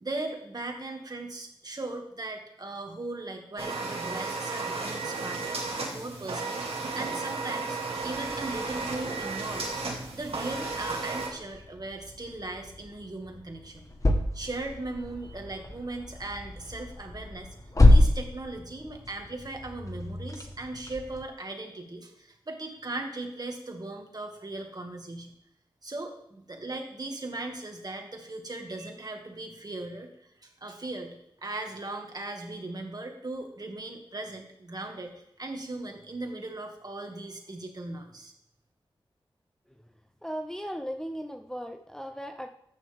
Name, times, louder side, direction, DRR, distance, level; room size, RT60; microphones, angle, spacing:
voice 1, 0.0-6.6 7.0-13.9 14.3-17.5 17.9-25.3 25.8-31.2 31.4-38.3, right 2 dB, 45° right, 3 dB, 2.1 m, -38 dB
sound 1, 3.6-11.3, right 3 dB, 90° right, 2.2 m, -34 dB
sound 2, 8.0-21.3, left 1 dB, 35° left, 1.4 m, -29 dB
voice 2, 40.2-42.5, equal, 5° left, 5 dB, 0.7 m, -37 dB
14.0 x 9.2 x 3.6 m, 0.79 s
wide cardioid pair, 70°, 10 cm